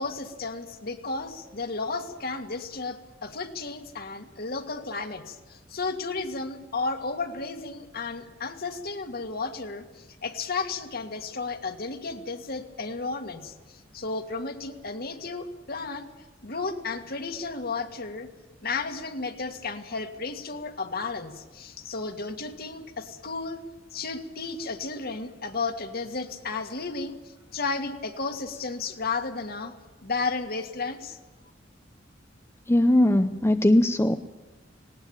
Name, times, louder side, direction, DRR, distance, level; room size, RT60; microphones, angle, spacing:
voice 1, 0.0-16.1 16.4-18.3 18.6-23.6 23.9-27.2 27.5-29.8 30.0-31.2, left 4 dB, 55° left, 7 dB, 1.9 m, -33 dB
voice 2, 32.7-34.2, left 1 dB, 15° left, 8 dB, 0.6 m, -20 dB
19.0 x 18.5 x 8.9 m, 1.1 s
head